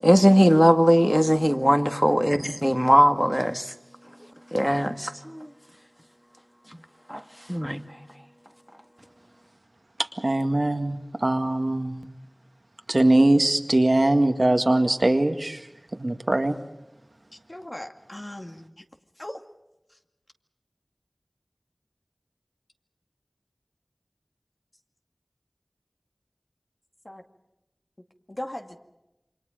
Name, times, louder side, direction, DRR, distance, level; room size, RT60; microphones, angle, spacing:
voice 1, 0.0-3.7 4.5-5.5 7.1-7.2 7.5-7.8, equal, ahead, 1.7 m, -19 dB
voice 2, 10.2-12.1 12.9-15.7 16.0-16.5, right 1 dB, 60° right, 1.9 m, -21 dB
voice 3, 17.5-18.8 19.2-19.4 27.0-27.2 28.3-28.8, left 1 dB, 40° left, 2.2 m, -38 dB
28.5 x 25.0 x 5.1 m
wide cardioid pair, 45°, 0 cm